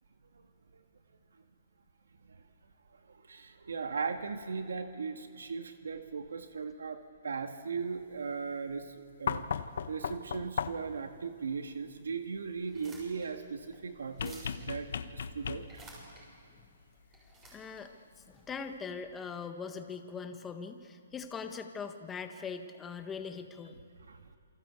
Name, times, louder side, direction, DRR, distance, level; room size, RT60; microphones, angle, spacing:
voice 1, 2.9-9.5 9.9-15.8 24.1-24.2, right 5 dB, 85° right, 7 dB, 1.9 m, -38 dB
sound 1, 9.3-11.0 14.2-15.9 17.5-17.6, left 7 dB, 60° left, 1.2 m, -36 dB
sound 2, 12.6-19.1, right 2 dB, 15° right, 6.7 m, -55 dB
voice 2, 17.5-17.9 18.3-23.8, left 5 dB, 10° left, 6 dB, 1.5 m, -41 dB
28.0 x 24.5 x 8.3 m, 2.5 s
hypercardioid pair, 160°, 0 cm